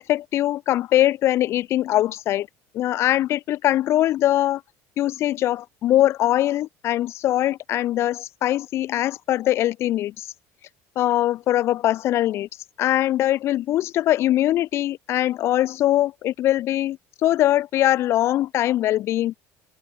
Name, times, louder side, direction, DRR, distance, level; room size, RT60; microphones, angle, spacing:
voice 1, 0.0-2.5 2.7-4.6 5.0-10.3 11.0-12.5 12.8-19.4, left 13 dB, 40° left, 0.5 m, -22 dB
open air
cardioid pair, 155°, 7 cm